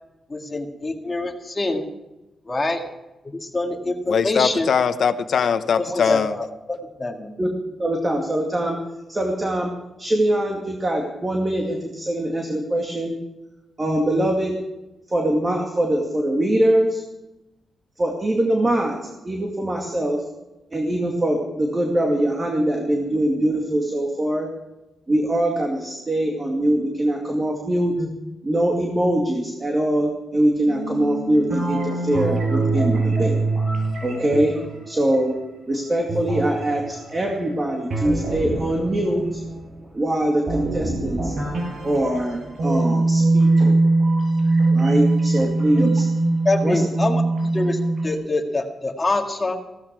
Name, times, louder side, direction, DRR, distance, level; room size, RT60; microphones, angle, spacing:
voice 1, 0.3-1.8 2.5-2.8 3.3-4.7 5.9-7.3 45.7-45.9 46.4-47.2 47.5-49.6, left 2 dB, 25° left, 2 dB, 2.2 m, -25 dB
voice 2, 4.1-6.4, left 6 dB, 65° left, 11 dB, 0.9 m, -21 dB
voice 3, 7.8-8.8 9.1-9.7 10.0-13.1 13.8-14.6 15.1-17.0 18.0-19.0 19.2-20.2 20.7-24.5 25.1-28.1 28.4-33.4 34.0-34.5 34.9-35.4 35.7-39.4 39.9-41.3 41.8-43.8 44.7-46.0 46.6-46.8, right 1 dB, 25° right, 1 dB, 2.3 m, -22 dB
sound 1, 30.7-35.4 36.1-39.8 40.5-48.2, right 2 dB, 55° right, 6.0 m, -22 dB
16.5 x 13.5 x 4.8 m, 1.0 s
cardioid pair, 115°, 0 cm